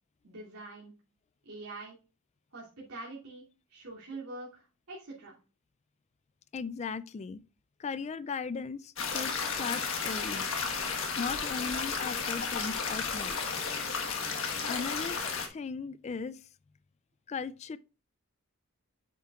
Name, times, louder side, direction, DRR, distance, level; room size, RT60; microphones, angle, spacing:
voice 1, 0.2-0.9 1.4-1.9 2.5-3.4 3.7-5.3, right 2 dB, 90° right, 2.6 m, -44 dB
voice 2, 6.5-7.4 7.8-10.5 11.2-13.4 14.7-15.2 15.5-16.4 17.3-17.8, left 5 dB, 30° left, 0.3 m, -37 dB
sound 1, 9.0-15.5, left 5 dB, 65° left, 1.4 m, -33 dB
9.2 x 7.4 x 2.4 m
head